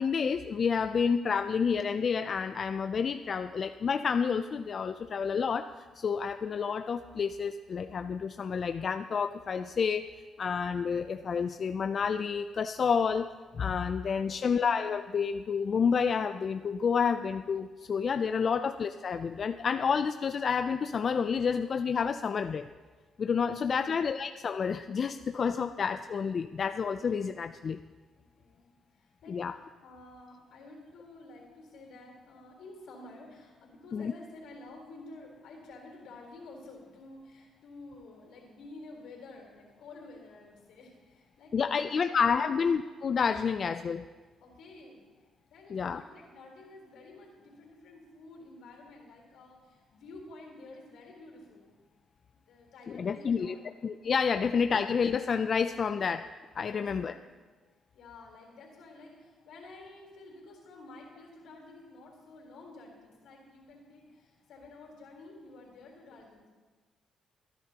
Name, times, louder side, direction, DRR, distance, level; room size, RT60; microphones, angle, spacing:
voice 1, 0.0-5.7 6.0-10.0 10.4-22.7 23.2-27.8 29.3-29.6 33.9-34.1 41.5-44.1 45.7-46.0 52.9-56.3 56.6-57.1, left 6 dB, 50° left, 9 dB, 0.4 m, -29 dB
voice 2, 14.0-14.6 23.7-23.9 28.1-42.6 44.4-45.1 45.5-51.7 52.4-53.7 56.6-57.4 57.9-66.5, left 2 dB, 80° left, 0 dB, 3.8 m, -51 dB
24.5 x 10.5 x 2.9 m, 1.4 s
cardioid pair, 90°, 0 cm